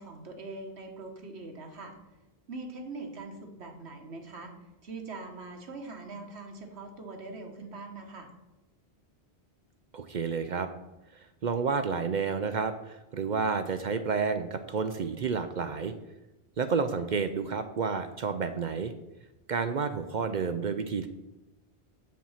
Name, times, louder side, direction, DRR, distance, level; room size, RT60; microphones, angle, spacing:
voice 1, 0.0-1.9 2.5-4.5 4.8-8.3 17.0-17.1, right 3 dB, 80° right, 4 dB, 1.6 m, -42 dB
voice 2, 9.9-10.7 11.4-15.9 16.6-18.9 19.5-21.1, right 5 dB, 55° right, 9 dB, 0.6 m, -30 dB
7.5 x 7.2 x 5.6 m, 1.0 s
omnidirectional pair, 1.1 m